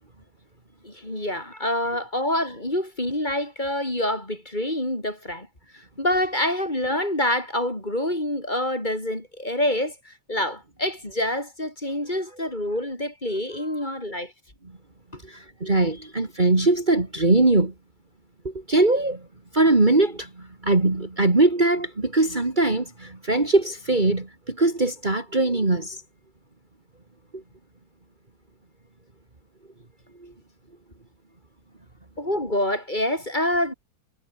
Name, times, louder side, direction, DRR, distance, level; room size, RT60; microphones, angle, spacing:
voice 1, 0.8-5.5 5.7-14.3 32.2-33.7, left 1 dB, 25° left, 6.3 m, -26 dB
voice 2, 15.2-17.7 18.4-19.3 19.5-26.0 27.3-27.4 30.2-30.3, right 2 dB, 30° right, 2.8 m, -21 dB
omnidirectional pair, 1.8 m